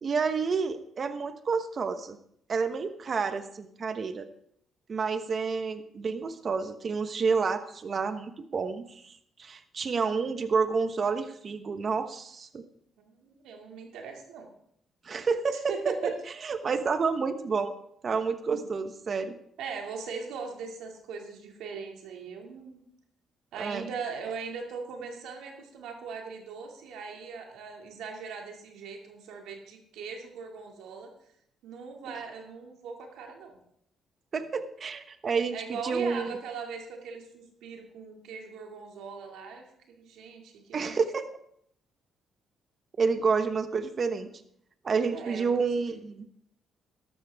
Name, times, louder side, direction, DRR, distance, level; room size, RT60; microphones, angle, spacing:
voice 1, 0.0-2.2 2.5-4.3 4.9-9.1 9.4-12.6 15.0-16.1 16.4-17.7 18.0-19.3 23.6-23.9 34.3-36.3 40.7-41.3 43.0-44.3 44.8-46.3, right 5 dB, 45° right, 10 dB, 1.1 m, -29 dB
voice 2, 13.0-14.5 15.5-16.2 18.5-18.6 19.6-22.8 23.5-31.1 31.6-33.6 35.5-41.0 45.1-46.0, right 5 dB, 85° right, 2 dB, 2.4 m, -40 dB
13.5 x 12.0 x 3.6 m, 0.70 s
cardioid pair, 90°, 0 cm